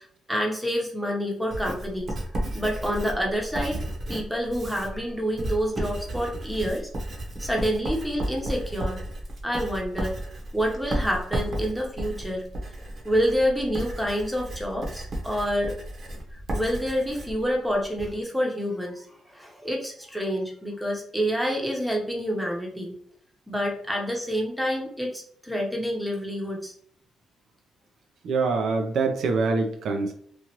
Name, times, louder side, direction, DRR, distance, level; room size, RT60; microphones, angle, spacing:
voice 1, 0.0-2.2 2.5-3.8 4.1-6.9 7.4-9.0 9.4-10.2 10.5-12.4 13.0-15.8 16.5-22.9 23.5-26.7, equal, ahead, -1 dB, 0.9 m, -28 dB
Writing, 1.5-18.1, right 1 dB, 50° right, 0.9 m, -33 dB
voice 2, 28.2-30.1, right 4 dB, 65° right, 4 dB, 0.4 m, -24 dB
3.0 x 2.4 x 2.9 m, 0.64 s
cardioid pair, 90°, 0 cm